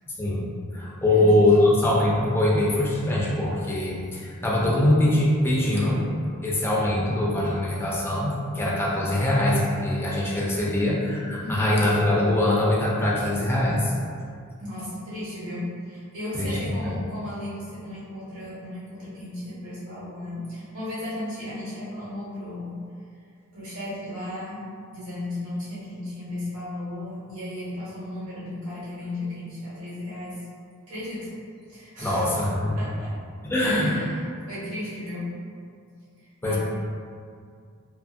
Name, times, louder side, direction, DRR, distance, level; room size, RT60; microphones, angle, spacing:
voice 1, 0.1-0.4 0.7-6.0 6.4-13.9 16.3-16.6 16.8-17.0 32.0-32.8 33.4-33.9 36.4-36.6, left 1 dB, 10° left, -5 dB, 0.4 m, -22 dB
voice 2, 14.6-22.8 23.5-24.6 24.9-30.4 30.9-31.3 31.7-32.3 32.7-33.1 33.6-35.3 36.4-36.6, left 1 dB, 70° right, -10 dB, 1.3 m, -35 dB
2.6 x 2.5 x 2.4 m, 2.2 s
head